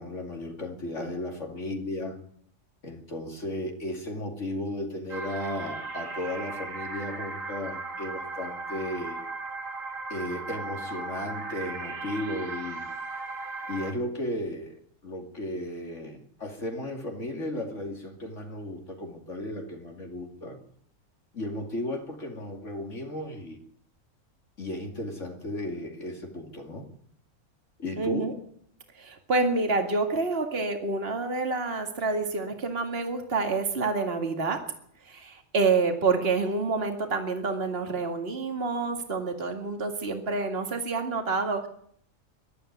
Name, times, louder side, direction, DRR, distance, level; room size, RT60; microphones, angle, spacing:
voice 1, 0.0-2.2 2.8-9.2 10.1-12.8 13.7-14.7 15.0-20.6 21.3-23.6 24.6-26.9 27.8-28.3, left 1 dB, 65° left, 3 dB, 2.9 m, -35 dB
sound 1, 5.1-13.9, right 3 dB, 75° right, 2.6 m, -37 dB
voice 2, 28.0-28.3 28.9-34.6 35.0-41.7, right 3 dB, 45° right, 5 dB, 2.4 m, -28 dB
21.5 x 13.0 x 9.4 m, 0.65 s
omnidirectional pair, 1.4 m